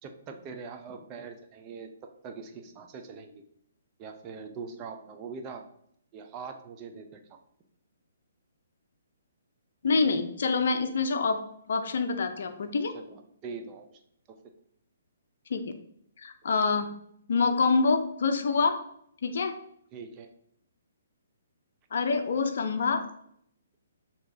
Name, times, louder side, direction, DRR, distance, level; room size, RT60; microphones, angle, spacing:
voice 1, 0.0-3.4 4.0-5.6 6.1-7.2 12.9-14.0 14.3-14.4 19.9-20.3, right 5 dB, 30° right, 5 dB, 0.6 m, -42 dB
voice 2, 9.8-11.4 11.7-12.9 15.5-15.6 16.2-16.9 17.3-18.8 19.2-19.6 21.9-23.1, left 4 dB, 60° left, 8 dB, 0.5 m, -26 dB
6.5 x 2.9 x 2.7 m, 0.69 s
figure-of-eight pair, 130°, 0 cm